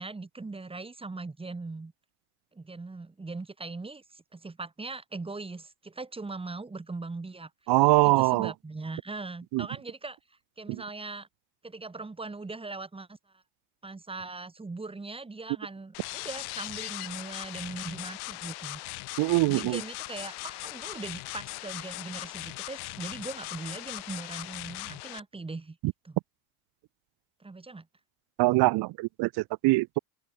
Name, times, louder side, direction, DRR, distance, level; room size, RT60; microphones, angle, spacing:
voice 1, 0.0-1.9 2.5-7.5 8.0-10.2 10.6-11.3 11.6-13.4 13.8-18.8 19.5-25.8 26.0-26.2 27.4-27.9, right 3 dB, 15° right, 6.6 m, -40 dB
voice 2, 7.7-8.5 9.5-9.7 19.2-19.8 25.8-25.9 28.4-30.0, right 21 dB, 75° right, 2.9 m, -23 dB
sound 1, 15.9-25.2, left 24 dB, 85° left, 6.3 m, -39 dB
open air
cardioid pair, 135°, 39 cm